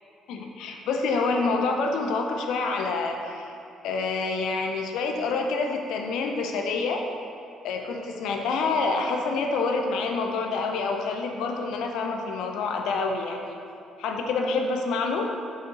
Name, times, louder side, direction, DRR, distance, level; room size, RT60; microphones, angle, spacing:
voice 1, 0.3-3.5 3.8-7.0 7.6-13.6 14.0-15.3, left 4 dB, 65° left, 3 dB, 0.7 m, -27 dB
7.4 x 5.2 x 4.0 m, 2.7 s
figure-of-eight pair, 45°, 0 cm